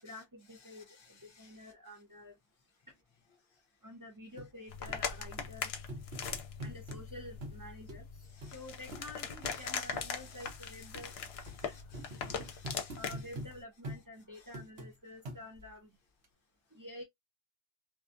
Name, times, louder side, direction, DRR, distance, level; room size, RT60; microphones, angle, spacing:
voice 1, 0.0-0.9 1.2-2.3 3.8-5.7 6.6-11.1 11.6-11.8 12.2-12.4 13.0-15.9 16.7-17.0, left 1 dB, 25° right, 0.5 m, -49 dB
voice 2, 0.5-1.7 8.2-8.8 9.5-13.2 14.3-14.5, left 4 dB, 35° left, 0.5 m, -60 dB
sound 1, 4.4-4.5 4.9-5.0 5.4-5.5 5.9-7.0 7.4-7.6 7.9-8.0 8.4-8.5 8.9-9.1 9.4-9.6 9.9-10.1 10.5-10.6 10.9-11.1 11.5-11.6 11.9-13.5 13.8-14.0 14.5-14.9 15.3-15.7 16.2-16.3, right 1 dB, 65° right, 1.2 m, -44 dB
sound 2, 4.7-13.6, left 6 dB, 65° left, 0.8 m, -41 dB
2.6 x 2.3 x 2.5 m
omnidirectional pair, 1.2 m